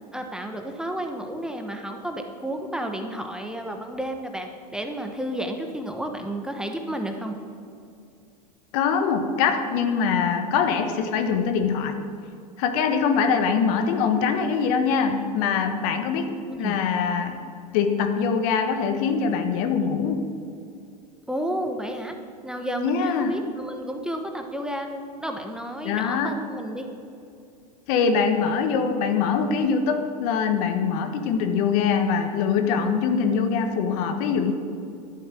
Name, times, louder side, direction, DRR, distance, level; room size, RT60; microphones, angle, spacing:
voice 1, 0.1-7.3 16.5-16.8 21.3-22.1 22.4-26.8, right 1 dB, 5° right, 4 dB, 1.2 m, -31 dB
voice 2, 8.7-12.0 12.6-17.4 17.7-20.3 22.8-23.3 25.8-26.3 27.9-34.5, left 6 dB, 60° left, 7 dB, 1.4 m, -23 dB
11.0 x 9.2 x 7.6 m, 2.5 s
hypercardioid pair, 105°, 21 cm